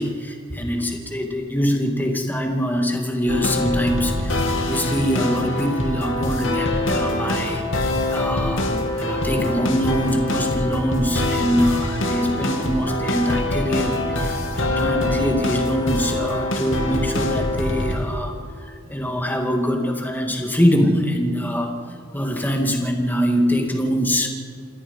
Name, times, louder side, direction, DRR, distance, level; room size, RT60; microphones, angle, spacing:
voice 1, 0.0-18.3 18.6-21.7 22.1-24.3, equal, 10° left, 2 dB, 2.1 m, -23 dB
sound 1, 3.3-18.3, left 1 dB, 70° left, 2.5 m, -24 dB
27.0 x 19.0 x 5.4 m, 2.1 s
head